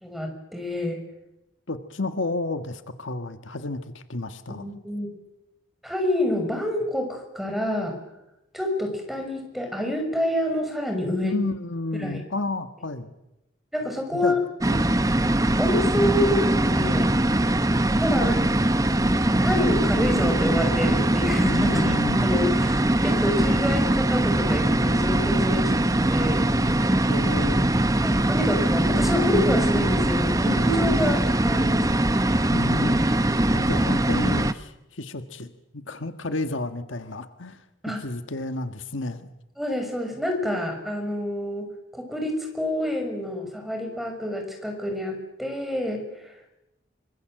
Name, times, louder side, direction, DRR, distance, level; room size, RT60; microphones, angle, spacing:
voice 1, 0.0-1.0 4.5-5.1 5.8-7.9 8.5-11.4 12.0-12.2 13.7-14.7 15.6-17.1 18.0-18.4 18.8-19.0 19.4-21.8 22.2-26.5 28.0-32.1 37.8-38.0 39.6-46.0, left 1 dB, ahead, 4 dB, 6.1 m, -27 dB
voice 2, 1.7-4.6 11.2-13.1 14.1-14.3 18.2-18.5 21.6-22.3 27.1-27.7 32.5-33.0 33.5-37.6 38.0-39.3, left 2 dB, 80° left, 9 dB, 1.6 m, -31 dB
sound 1, 14.6-34.5, right 1 dB, 15° right, 0.9 m, -22 dB
25.5 x 25.5 x 7.8 m, 0.92 s
head